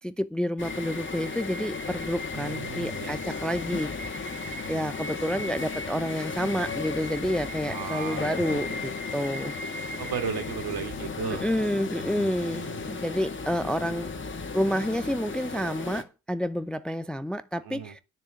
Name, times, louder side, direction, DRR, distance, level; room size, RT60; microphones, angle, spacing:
voice 1, 0.0-4.4 4.7-9.5 11.4-14.1 14.5-18.0, equal, ahead, 0.6 m, -29 dB
sound 1, 0.6-16.0, left 4 dB, 25° left, 2.0 m, -35 dB
sound 2, 2.2-13.2, left 8 dB, 70° left, 1.7 m, -50 dB
voice 2, 2.3-3.4 5.2-5.5 7.7-8.9 10.0-11.5 12.1-12.8 17.6-17.9, right 6 dB, 60° right, 2.9 m, -36 dB
9.9 x 6.2 x 8.2 m
supercardioid pair, 70°, 42 cm